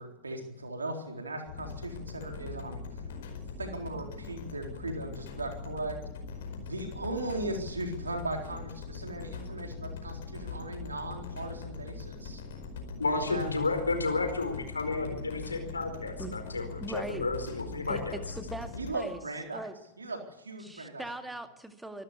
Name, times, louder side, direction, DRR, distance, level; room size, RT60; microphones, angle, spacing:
voice 1, 0.0-3.0 3.6-6.0 6.6-12.4 12.9-13.5 18.8-19.6 20.0-21.0, right 2 dB, 75° right, 3 dB, 3.9 m, -38 dB
sound 1, 1.5-18.9, left 4 dB, 60° left, 4.9 m, -42 dB
voice 2, 13.0-18.2, left 3 dB, 80° left, 6 dB, 4.4 m, -32 dB
voice 3, 16.8-17.3 17.9-19.2 19.5-19.8 20.6-22.0, right 1 dB, 5° right, 8 dB, 2.0 m, -40 dB
25.5 x 13.0 x 8.3 m, 0.89 s
figure-of-eight pair, 90°, 0 cm